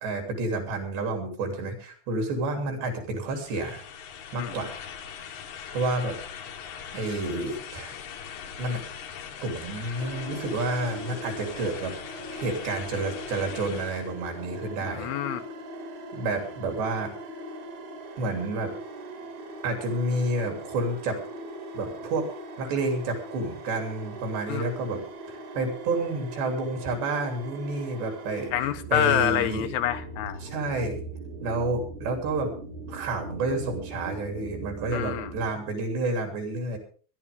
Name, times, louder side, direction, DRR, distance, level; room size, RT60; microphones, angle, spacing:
voice 1, 0.0-3.8 4.3-4.8 5.7-6.2 6.9-8.0 8.6-8.8 9.4-11.9 12.3-15.1 16.1-17.1 18.2-18.7 19.6-21.2 21.7-22.3 22.6-25.0 25.3-28.5 28.9-29.7 30.4-31.0 31.4-32.5 32.9-36.8, right 2 dB, 70° right, 4 dB, 5.2 m, -29 dB
sound 1, 3.2-14.1, left 7 dB, 65° left, 2.0 m, -41 dB
sound 2, 10.0-28.5, right 1 dB, 50° right, 2.5 m, -41 dB
voice 2, 14.9-15.4 24.5-24.7 28.5-30.4 34.9-35.3, left 12 dB, 80° left, 9 dB, 2.8 m, -27 dB
sound 3, 28.5-35.5, right 2 dB, 85° right, 6.3 m, -39 dB
22.0 x 11.5 x 3.7 m, 0.41 s
omnidirectional pair, 5.1 m